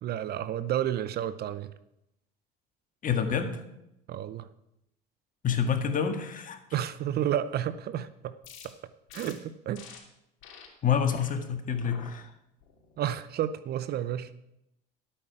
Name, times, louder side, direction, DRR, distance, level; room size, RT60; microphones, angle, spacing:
voice 1, 0.0-1.7 4.1-4.5 6.7-8.4 8.6-8.7 9.1-9.9 13.0-14.3, right 11 dB, 50° right, 15 dB, 0.7 m, -31 dB
voice 2, 3.0-3.6 5.4-6.6 10.8-12.3, left 7 dB, 40° left, 7 dB, 1.8 m, -28 dB
sound 1, 8.4-8.7 9.1-9.3 9.7-10.0 10.4-10.7 11.1-11.3 11.8-12.1 12.6-13.0, left 7 dB, 65° left, 3.0 m, -48 dB
12.5 x 8.8 x 4.9 m, 0.83 s
supercardioid pair, 85°, 21 cm